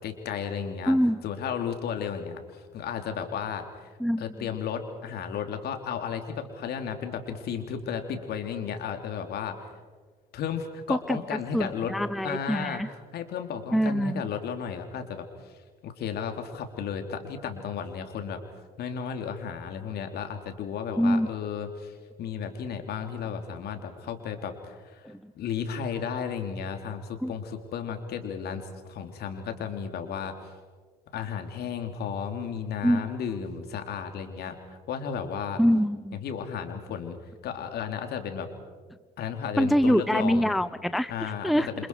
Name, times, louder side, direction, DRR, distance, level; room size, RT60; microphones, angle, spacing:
voice 1, 0.0-3.9 4.2-9.6 10.3-11.9 12.2-15.5 15.8-18.4 18.8-25.1 25.3-30.3 31.1-34.6 34.9-35.6 36.1-37.2 37.4-38.5 39.2-40.5 41.1-41.9, left 7 dB, 55° left, 6 dB, 3.3 m, -34 dB
voice 2, 0.9-1.2 4.0-4.2 10.9-11.2 11.5-12.9 13.7-14.2 21.0-21.3 25.0-25.2 27.2-27.3 32.8-33.0 35.6-36.2 39.6-41.7, equal, ahead, 15 dB, 0.6 m, -24 dB
28.0 x 27.0 x 4.8 m, 1.5 s
hypercardioid pair, 60°, 20 cm